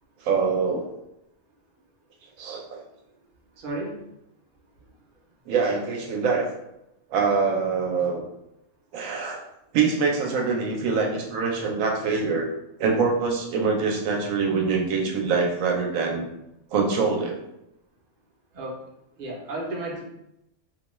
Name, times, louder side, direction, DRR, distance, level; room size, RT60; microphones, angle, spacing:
voice 1, 0.2-0.9 2.4-2.8 5.5-6.5 7.1-8.3 8.9-9.4 9.7-12.5 12.8-16.3 16.7-17.4, right 5 dB, 85° right, 0 dB, 1.0 m, -24 dB
voice 2, 3.6-3.9 18.5-18.7 19.2-20.0, right 2 dB, 50° right, -2 dB, 0.7 m, -32 dB
2.6 x 2.2 x 3.0 m, 0.86 s
omnidirectional pair, 1.3 m